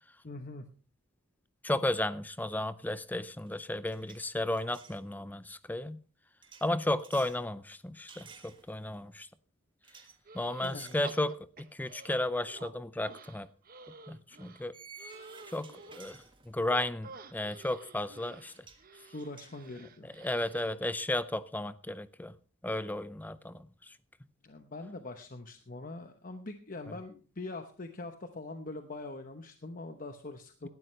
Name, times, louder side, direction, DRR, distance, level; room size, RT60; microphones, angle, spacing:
voice 1, 0.2-0.7 10.6-11.0 19.1-20.1 24.4-30.7, left 2 dB, 40° left, 0.9 m, -43 dB
voice 2, 1.6-6.0 6.6-9.3 10.3-11.3 11.8-13.5 14.1-14.7 15.5-15.7 15.9-16.2 16.5-18.5 20.2-22.3 22.6-23.6, left 1 dB, 10° left, 0.5 m, -33 dB
sound 1, 2.9-3.1 3.4-5.0 6.4-7.4 8.1-9.0 9.8-10.2 10.6-11.1 11.5-11.7 13.2-13.4 14.7-16.8 18.1-18.2 18.5-18.9 19.2-20.7, right 5 dB, 20° right, 1.6 m, -54 dB
sound 2, 10.2-10.8 11.0-12.7 13.1-16.1 17.0-20.8, right 4 dB, 40° right, 1.0 m, -51 dB
17.5 x 12.0 x 3.2 m
head